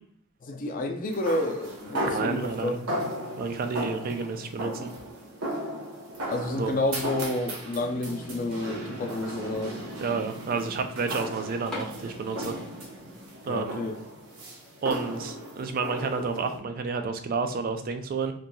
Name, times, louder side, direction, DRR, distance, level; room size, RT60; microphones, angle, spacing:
voice 1, 0.4-2.8 6.3-9.8 13.5-14.0, left 2 dB, 40° left, 5 dB, 0.4 m, -30 dB
sound 1, 1.1-16.6, right 1 dB, 85° right, 0.8 m, -36 dB
voice 2, 2.0-2.8 3.4-4.9 6.6-6.7 10.0-12.6 13.5-13.8 14.8-18.3, right 4 dB, 45° right, 7 dB, 0.3 m, -30 dB
sound 2, 11.7-13.5 13.8-13.9 14.5-14.6 15.1-15.2 15.4-15.5 16.3-16.6, left 2 dB, 5° left, 0.7 m, -42 dB
2.9 x 2.4 x 2.2 m, 0.66 s
head